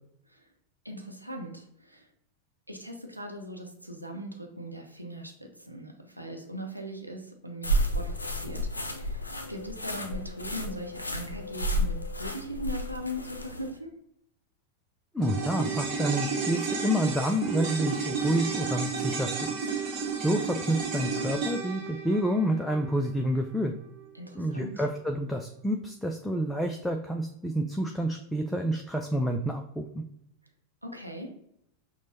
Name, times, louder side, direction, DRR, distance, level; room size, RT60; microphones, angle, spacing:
voice 1, 0.8-2.1 2.7-9.2 9.5-14.0 24.1-24.8 30.8-31.3, equal, 90° right, 2 dB, 0.6 m, -40 dB
sound 1, 7.6-13.7, equal, 80° left, 0.4 m, -32 dB
voice 2, 15.1-19.5 19.8-23.7 24.3-30.0, equal, 5° left, 4 dB, 0.3 m, -29 dB
sound 2, 15.2-23.7 24.0-24.1, right 5 dB, 40° right, 0.9 m, -32 dB
5.9 x 2.0 x 2.7 m, 0.76 s
figure-of-eight pair, 90°, 0 cm